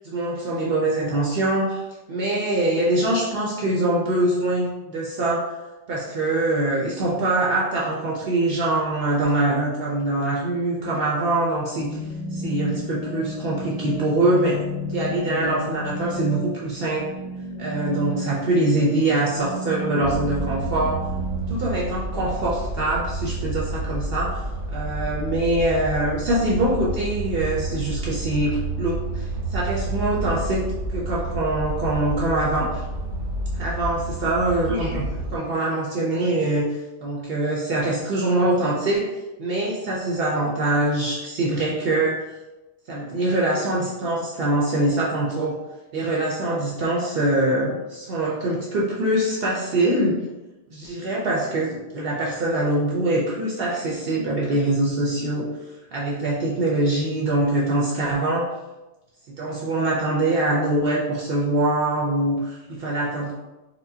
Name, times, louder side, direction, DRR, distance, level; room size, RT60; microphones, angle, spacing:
voice 1, 0.0-1.8 2.1-5.5 5.9-12.0 12.3-17.1 17.6-21.1 21.5-24.4 24.7-30.7 30.9-32.8 33.5-36.7 37.0-42.2 42.9-45.6 45.9-50.2 50.7-55.5 55.9-58.5 59.3-63.3, right 2 dB, 60° right, -4 dB, 0.8 m, -23 dB
sound 1, 11.6-21.5, left 1 dB, 60° left, 0.4 m, -33 dB
sound 2, 20.0-35.4, right 2 dB, 85° right, 1.1 m, -30 dB
4.3 x 2.1 x 2.7 m, 1.0 s
omnidirectional pair, 1.2 m